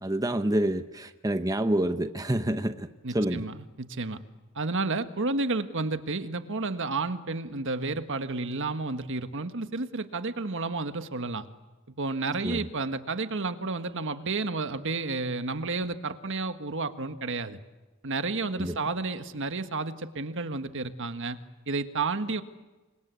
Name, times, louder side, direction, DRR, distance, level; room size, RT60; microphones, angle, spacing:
voice 1, 0.0-3.5 12.4-12.7 18.6-18.8, right 1 dB, 15° right, 9 dB, 0.9 m, -28 dB
voice 2, 3.0-4.2 4.5-11.5 12.0-17.6 18.0-21.4 21.7-22.4, right 3 dB, 60° right, 9 dB, 1.5 m, -31 dB
29.0 x 24.5 x 8.4 m, 1.2 s
head